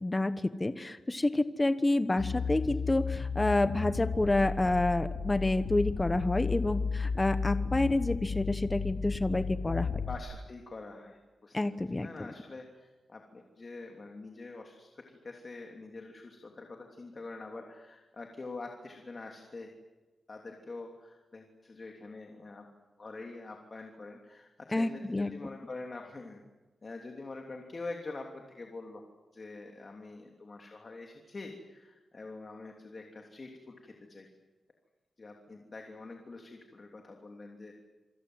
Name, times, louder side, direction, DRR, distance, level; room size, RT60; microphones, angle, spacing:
voice 1, 0.0-9.9 11.5-12.3 24.7-25.3, left 2 dB, 20° left, 10 dB, 1.1 m, -29 dB
sound 1, 2.2-10.2, left 5 dB, 85° left, 2.4 m, -34 dB
voice 2, 10.1-11.6 12.0-19.7 20.3-22.7 23.0-26.4 26.8-29.0 29.3-34.3 35.2-37.7, left 3 dB, 40° left, 2 dB, 3.0 m, -45 dB
27.5 x 24.5 x 8.0 m, 1.2 s
wide cardioid pair, 130°, 0 cm